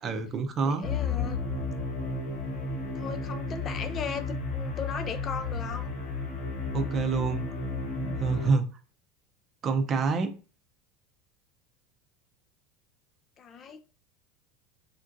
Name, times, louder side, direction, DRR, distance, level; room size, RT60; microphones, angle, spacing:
voice 1, 0.0-0.8 6.7-7.5 8.0-8.7 9.6-10.4, right 4 dB, 35° right, 0.5 m, -27 dB
voice 2, 0.6-1.4 3.0-5.9 13.4-13.8, left 6 dB, 35° left, 0.3 m, -37 dB
sound 1, 0.8-8.5, left 3 dB, 70° left, 1.1 m, -33 dB
3.6 x 2.4 x 2.5 m
supercardioid pair, 115°, 0 cm